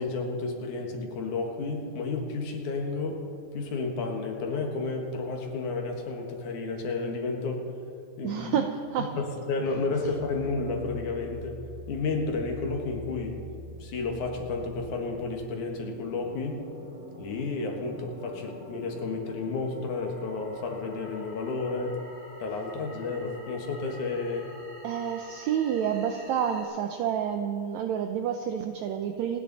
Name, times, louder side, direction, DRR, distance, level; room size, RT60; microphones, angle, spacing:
voice 1, 0.0-3.2 3.5-7.6 8.2-8.6 9.1-11.6 11.9-13.4 13.8-16.6 17.2-22.0 22.4-24.5, left 3 dB, 65° left, 2 dB, 2.8 m, -31 dB
voice 2, 8.2-9.2 24.8-29.4, right 8 dB, 85° right, 6 dB, 1.6 m, -29 dB
sound 1, 9.6-26.6, equal, 20° right, 3.4 m, -46 dB
27.0 x 10.5 x 4.1 m, 2.8 s
omnidirectional pair, 4.0 m